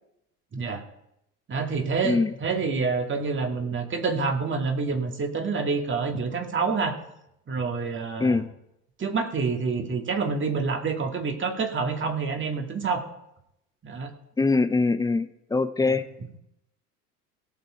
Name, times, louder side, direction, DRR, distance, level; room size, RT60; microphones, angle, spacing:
voice 1, 0.5-0.8 1.5-7.0 7.5-8.4 9.0-13.0 13.8-14.1 15.9-16.0, right 4 dB, 25° right, 4 dB, 2.1 m, -27 dB
voice 2, 14.4-16.0, left 3 dB, 10° left, 12 dB, 0.6 m, -23 dB
17.5 x 6.8 x 4.5 m, 0.82 s
figure-of-eight pair, 75°, 47 cm